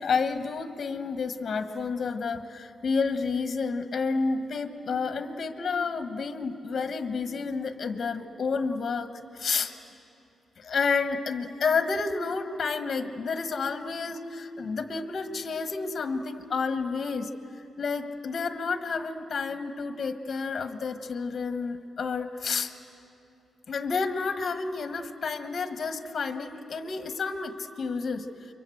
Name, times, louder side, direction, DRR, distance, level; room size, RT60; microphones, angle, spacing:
voice 1, 0.0-9.1 9.3-9.7 10.6-17.3 17.6-22.7 23.7-28.3, left 4 dB, 40° left, 8 dB, 1.3 m, -30 dB
29.5 x 23.5 x 7.8 m, 2.7 s
wide cardioid pair, 140°, 0 cm